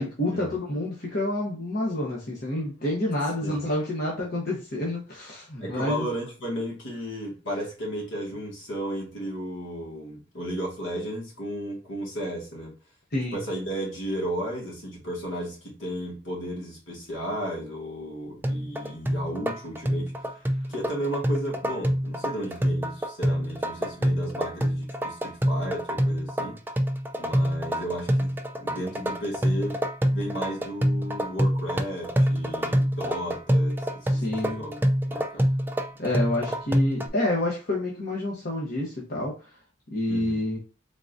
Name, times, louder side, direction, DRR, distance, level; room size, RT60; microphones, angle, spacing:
voice 1, 0.0-6.1 13.1-13.4 34.1-34.7 36.0-39.5 39.9-40.6, left 1 dB, 50° left, -3 dB, 1.0 m, -28 dB
voice 2, 5.6-12.7 13.3-20.1 20.7-26.6 27.2-29.8 30.1-34.8 35.1-35.4 40.1-40.4, equal, 75° left, -3 dB, 1.7 m, -34 dB
sound 1, 18.4-37.1, equal, 10° right, 0.3 m, -26 dB
3.9 x 3.6 x 2.5 m, 0.34 s
head